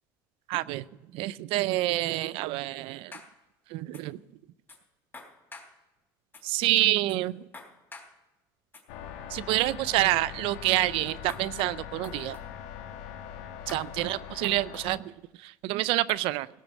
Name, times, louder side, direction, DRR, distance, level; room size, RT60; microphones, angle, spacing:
voice 1, 0.5-0.8 1.1-3.1 3.7-4.2 6.4-7.5 9.3-12.4 13.7-16.5, right 17 dB, 65° right, 19 dB, 0.5 m, -27 dB
sound 1, 3.1-3.3 3.9-4.0 4.7-4.8 5.1-5.7 6.3-6.4 7.1-7.2 7.5-8.1 8.7-8.8 9.5-9.6 11.3-11.7 12.0-12.5 13.7-14.1 14.4-14.9 16.1-16.2, left 3 dB, 20° left, 3.5 m, -46 dB
sound 2, 8.9-15.0, left 9 dB, 75° left, 1.4 m, -42 dB
18.0 x 6.1 x 8.3 m, 1.0 s
supercardioid pair, 80°, 10 cm